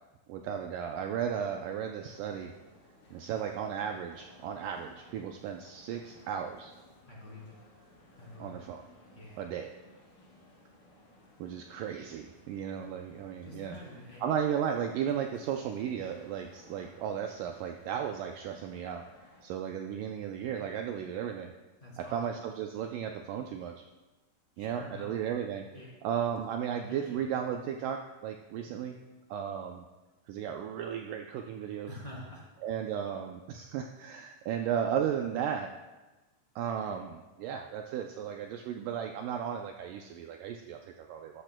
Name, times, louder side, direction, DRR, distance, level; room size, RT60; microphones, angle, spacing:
voice 1, 0.3-2.5 3.1-6.7 8.4-8.8 9.4-9.7 11.4-13.8 14.2-19.1 19.4-21.5 22.0-23.8 24.6-25.7 26.0-29.0 29.3-29.9 30.3-31.9 32.6-35.7 36.6-41.4, right 8 dB, 85° right, 4 dB, 1.8 m, -35 dB
sound 1, 2.1-19.4, left 1 dB, 90° left, 5.3 m, -59 dB
voice 2, 7.0-7.5 8.1-8.7 9.1-9.4 13.4-14.4 21.8-22.2 24.6-25.1 25.7-25.9 26.7-27.3 31.9-32.5 32.9-33.0, left 1 dB, 15° left, -5 dB, 2.1 m, -47 dB
13.5 x 12.0 x 2.2 m, 1.1 s
omnidirectional pair, 4.4 m